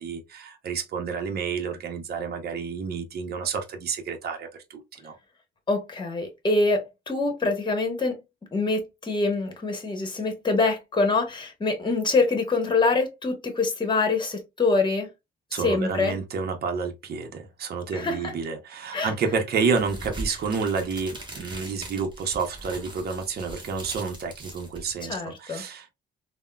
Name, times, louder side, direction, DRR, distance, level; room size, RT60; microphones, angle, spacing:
voice 1, 0.0-5.2 15.5-25.9, right 5 dB, 55° right, 0.7 m, -30 dB
voice 2, 5.7-8.2 8.5-15.1 15.5-16.2 17.9-18.3 18.9-19.1 25.0-25.6, left 3 dB, 25° left, 1.0 m, -25 dB
sound 1, 19.7-25.2, right 2 dB, 25° right, 1.2 m, -40 dB
3.4 x 2.1 x 2.2 m
cardioid pair, 90°, 20 cm